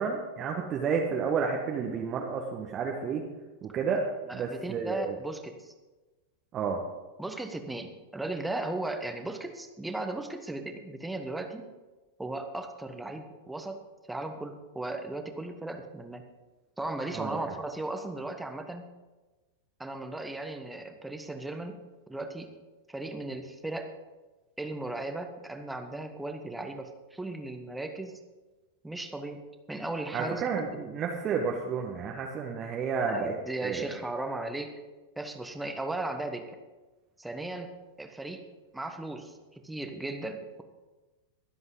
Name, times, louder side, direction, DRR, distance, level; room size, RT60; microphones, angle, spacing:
voice 1, 0.0-3.2 3.6-4.0 4.3-5.2 6.5-6.8 17.1-17.4 30.1-33.3 33.6-33.9, right 6 dB, 30° right, 1 dB, 1.3 m, -31 dB
voice 2, 4.3-5.7 7.2-11.7 12.2-13.8 14.1-16.3 16.8-18.8 19.8-21.8 22.1-22.5 22.9-23.9 24.6-28.2 28.8-30.9 33.0-34.8 35.2-36.5 37.2-37.7 38.0-38.4 38.7-40.6, right 2 dB, 5° right, 6 dB, 1.3 m, -36 dB
22.0 x 7.8 x 3.9 m, 1.2 s
figure-of-eight pair, 90°, 0 cm